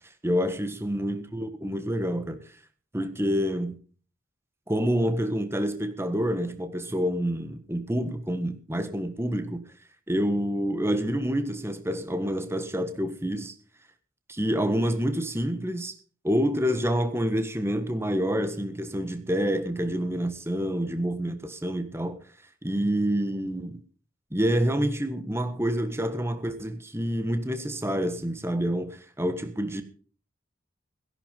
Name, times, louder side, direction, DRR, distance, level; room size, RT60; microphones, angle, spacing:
voice 1, 0.2-2.4 2.9-3.8 4.7-9.6 10.1-13.5 14.3-15.9 16.2-22.2 22.6-23.8 24.3-29.8, equal, 10° right, 1.5 m, -27 dB
17.0 x 11.0 x 5.3 m
head